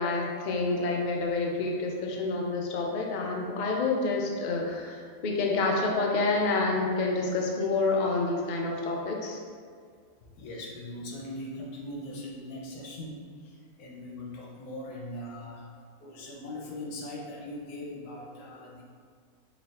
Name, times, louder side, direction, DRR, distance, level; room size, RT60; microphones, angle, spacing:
voice 1, 0.0-9.4, left 3 dB, 65° left, -1 dB, 0.4 m, -28 dB
voice 2, 10.2-15.7 16.0-18.8, left 1 dB, 85° left, -2 dB, 1.3 m, -40 dB
5.1 x 3.2 x 2.9 m, 2.1 s
omnidirectional pair, 1.6 m